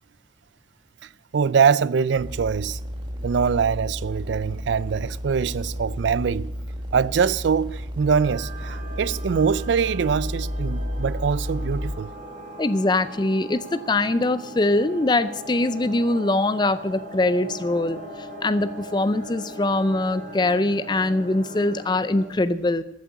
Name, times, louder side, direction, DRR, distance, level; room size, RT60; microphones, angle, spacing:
voice 1, 1.3-2.8 3.2-6.5 6.9-12.1, right 6 dB, 65° right, 0.4 m, -23 dB
sound 1, 2.2-11.9, equal, 25° right, 1.4 m, -32 dB
sound 2, 8.2-22.3, right 1 dB, 45° right, 2.9 m, -40 dB
voice 2, 12.6-22.8, left 2 dB, 20° left, 0.4 m, -23 dB
14.0 x 7.5 x 8.3 m
head